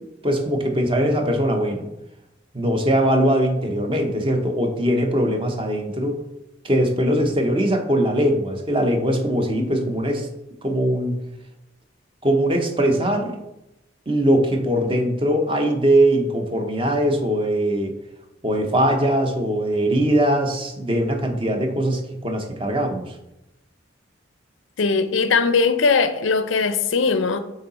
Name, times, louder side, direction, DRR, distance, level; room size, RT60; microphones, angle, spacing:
voice 1, 0.2-1.9 2.5-6.2 6.6-10.3 10.6-11.1 12.2-13.4 14.1-18.0 18.4-23.1, right 1 dB, 25° right, 0.7 m, -21 dB
voice 2, 24.8-27.4, left 4 dB, 85° left, 0.5 m, -20 dB
6.4 x 3.9 x 4.1 m
head